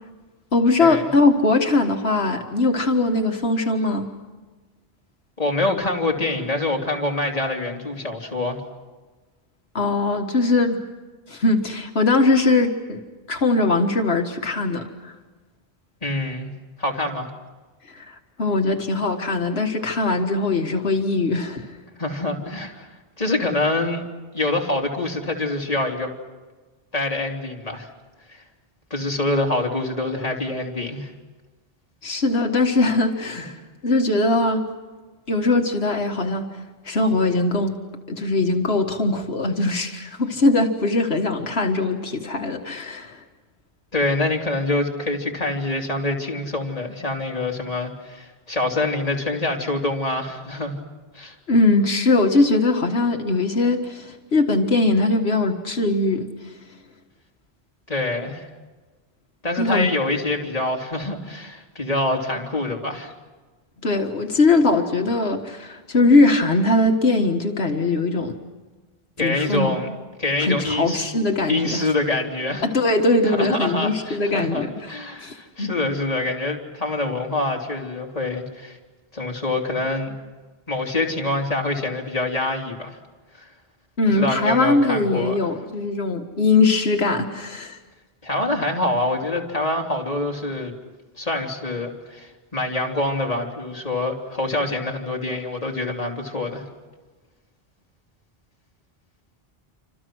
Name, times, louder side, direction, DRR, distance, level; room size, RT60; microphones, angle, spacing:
voice 1, 0.5-4.1 9.7-10.8 11.3-13.0 13.3-15.1 17.9-21.7 32.0-34.7 35.3-36.5 36.9-37.8 38.1-43.2 51.5-56.3 59.6-59.9 63.8-68.4 69.2-69.8 70.4-71.9 72.6-74.7 75.2-75.7 84.0-87.8, left 2 dB, 85° left, 3 dB, 1.9 m, -21 dB
voice 2, 5.4-8.6 16.0-16.5 16.8-17.3 22.0-22.9 23.2-24.0 24.3-26.1 26.9-27.9 28.3-28.4 28.9-31.1 43.9-50.8 51.1-51.3 57.9-58.5 59.4-63.1 69.2-71.0 71.5-72.6 73.2-78.8 79.1-80.2 80.7-83.0 83.3-83.5 84.1-85.5 88.2-90.7 91.2-96.6, left 2 dB, 35° left, 0 dB, 3.2 m, -25 dB
28.5 x 26.0 x 6.2 m, 1.3 s
omnidirectional pair, 1.0 m